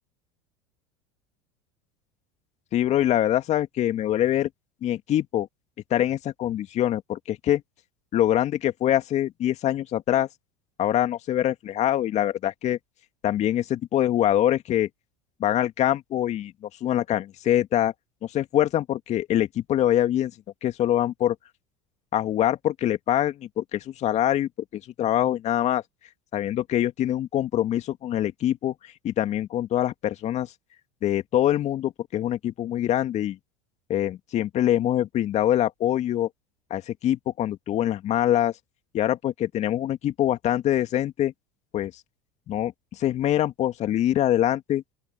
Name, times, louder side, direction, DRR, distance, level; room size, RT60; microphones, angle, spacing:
voice 1, 2.7-4.5 4.8-5.5 5.9-7.6 8.1-10.3 10.8-12.8 13.2-14.9 15.4-16.5 16.8-17.9 18.2-20.3 20.6-21.4 22.1-25.8 26.3-28.7 29.0-30.5 31.0-33.4 33.9-36.3 36.7-38.5 38.9-41.3 41.7-41.9 42.5-42.7 43.0-44.8, left 12 dB, 45° left, 2.2 m, -24 dB
open air
hypercardioid pair, 85°, 16 cm